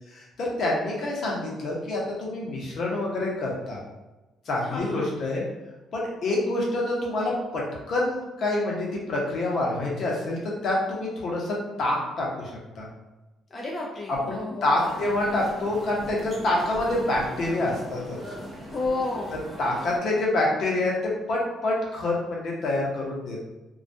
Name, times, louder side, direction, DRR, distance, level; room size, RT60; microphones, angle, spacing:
voice 1, 0.1-3.8 4.5-5.4 5.9-7.6 7.9-12.9 14.1-18.2 19.6-23.4, left 2 dB, 60° left, -3 dB, 0.7 m, -27 dB
voice 2, 4.7-5.1 13.5-14.8 18.7-19.4, left 3 dB, 25° left, -3 dB, 0.4 m, -31 dB
sound 1, 14.7-20.0, equal, 20° right, 0.6 m, -40 dB
2.3 x 2.2 x 2.6 m, 1.1 s
cardioid pair, 110°, 0 cm